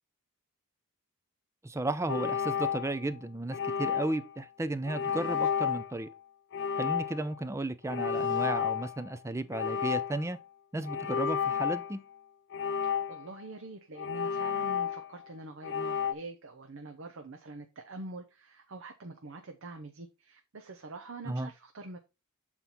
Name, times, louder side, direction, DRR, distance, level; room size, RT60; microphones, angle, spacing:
voice 1, 1.6-6.1 6.8-10.4 10.7-12.0 21.3-21.5, right 2 dB, 15° right, 0.4 m, -34 dB
sound 1, 2.1-3.1 3.5-4.3 4.9-5.9 6.5-7.4 7.9-9.1 9.5-10.3 10.8-11.9 12.5-13.4 14.0-15.2 15.6-16.1, left 7 dB, 55° left, 0.4 m, -32 dB
voice 2, 12.8-22.0, right 2 dB, 60° right, 0.7 m, -45 dB
7.3 x 4.5 x 4.1 m
head